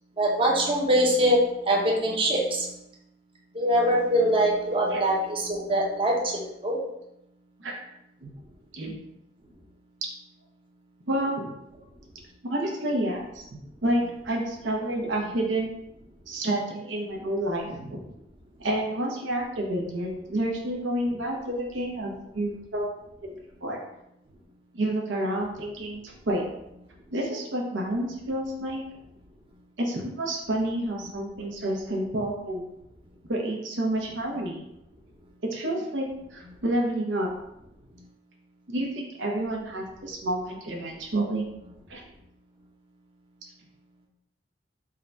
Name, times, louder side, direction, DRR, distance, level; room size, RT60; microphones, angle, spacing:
voice 1, 0.2-2.7 3.5-6.8 21.5-21.6, right 1 dB, 30° right, -3 dB, 0.7 m, -23 dB
voice 2, 11.1-11.6 12.4-13.3 13.5-15.7 16.3-18.0 18.6-22.8 23.2-23.4 23.6-23.8 24.7-26.4 27.1-28.8 29.8-32.7 33.3-34.6 35.4-37.3 38.7-41.5 41.9-42.0, right 1 dB, 90° right, -1 dB, 0.8 m, -29 dB
3.7 x 2.3 x 4.0 m, 0.83 s
head